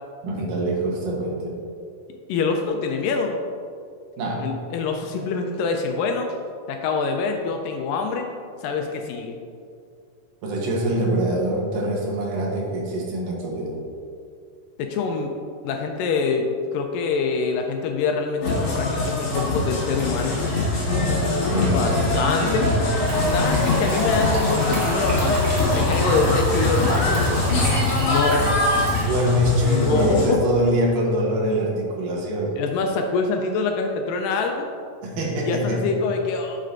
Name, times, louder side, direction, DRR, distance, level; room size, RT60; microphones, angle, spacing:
voice 1, 0.2-1.6 4.2-4.5 10.4-13.8 20.8-22.1 22.4-22.9 27.6-27.8 28.4-28.6 29.0-32.6 35.0-36.0, right 1 dB, 75° right, -2 dB, 2.6 m, -24 dB
voice 2, 2.3-3.4 4.4-6.3 6.7-8.3 8.6-9.4 14.8-15.3 15.6-20.4 21.6-22.7 23.1-27.2 27.9-28.5 29.6-30.4 32.6-34.7 35.5-36.6, left 4 dB, 80° left, 3 dB, 2.1 m, -25 dB
sound 1, 18.4-30.3, left 2 dB, 55° left, 2.2 m, -22 dB
sound 2, 23.1-29.1, right 1 dB, 45° right, 1.6 m, -30 dB
9.4 x 6.6 x 2.6 m, 2.4 s
omnidirectional pair, 4.1 m